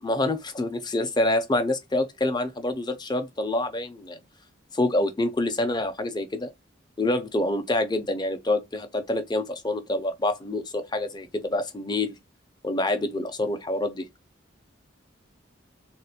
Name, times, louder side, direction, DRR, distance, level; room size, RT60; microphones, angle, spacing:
voice 1, 0.0-4.2 4.7-6.5 7.0-12.1 12.6-14.1, left 2 dB, 20° left, 0.5 m, -26 dB
3.3 x 3.0 x 2.4 m
head